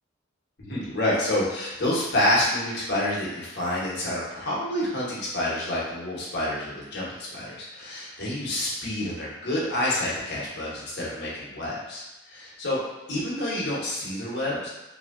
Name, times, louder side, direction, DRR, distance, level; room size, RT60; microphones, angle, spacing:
voice 1, 0.6-12.0 12.3-12.8 13.1-14.7, left 1 dB, 60° left, -7 dB, 0.9 m, -28 dB
2.8 x 2.6 x 2.5 m, 1.0 s
head